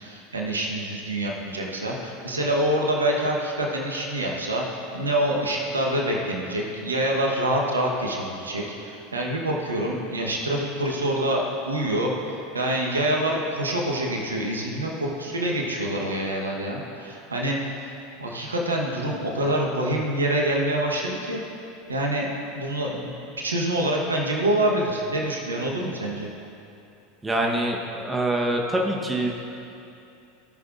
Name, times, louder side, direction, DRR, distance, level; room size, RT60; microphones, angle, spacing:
voice 1, 0.0-4.6 4.9-12.1 12.5-17.7 18.2-21.4 21.9-22.3 22.5-26.3, right 1 dB, 90° right, -1 dB, 1.2 m, -26 dB
voice 2, 27.2-29.4, right 1 dB, 15° right, 0 dB, 1.2 m, -25 dB
17.5 x 6.4 x 2.6 m, 2.8 s
hypercardioid pair, 85°, 0 cm